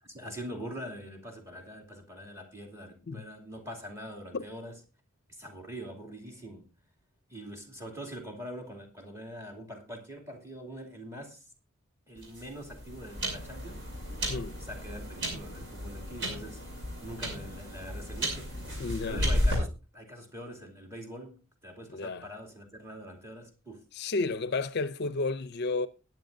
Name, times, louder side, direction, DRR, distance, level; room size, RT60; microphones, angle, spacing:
voice 1, 0.0-4.7 5.3-6.7 7.3-11.5 12.1-13.9 14.4-16.6 17.0-18.5 19.0-19.7 19.9-23.8, equal, 15° right, 2.6 m, -43 dB
sound 1, 12.2-19.5, equal, 60° right, 6.0 m, -33 dB
voice 2, 18.8-19.2 21.9-22.3 23.9-25.9, left 3 dB, 55° left, 0.5 m, -32 dB
20.5 x 9.2 x 2.6 m
head